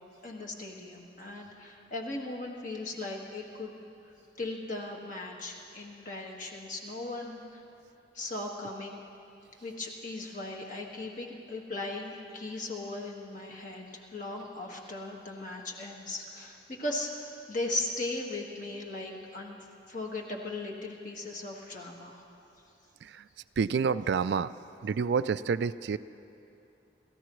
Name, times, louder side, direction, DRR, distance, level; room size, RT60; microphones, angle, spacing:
voice 1, 0.2-3.7 4.4-7.6 8.1-9.0 9.6-19.6 19.9-22.2, left 2 dB, 45° left, 0 dB, 1.7 m, -38 dB
voice 2, 23.6-24.5 24.8-26.0, right 6 dB, 70° right, 14 dB, 0.3 m, -28 dB
30.0 x 14.5 x 3.1 m, 2.8 s
head